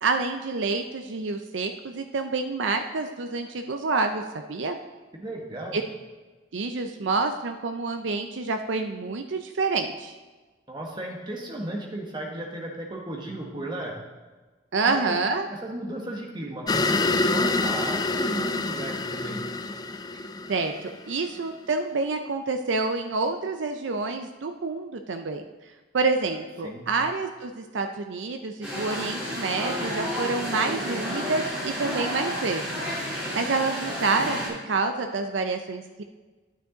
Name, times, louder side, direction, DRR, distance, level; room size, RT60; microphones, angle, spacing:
voice 1, 0.0-4.2 4.5-4.8 5.7-5.8 6.5-10.1 14.7-15.5 20.5-25.4 25.9-32.9 33.1-34.4 34.7-36.0, right 3 dB, 75° right, 6 dB, 0.5 m, -28 dB
voice 2, 5.2-5.8 10.7-13.9 14.8-15.2 15.6-19.4 26.6-26.9, right 1 dB, 25° right, 0 dB, 1.5 m, -35 dB
sound 1, 16.7-21.3, left 3 dB, 20° left, 0.3 m, -26 dB
sound 2, 28.6-34.5, equal, 5° right, 3.5 m, -31 dB
9.4 x 9.1 x 3.9 m, 1.3 s
head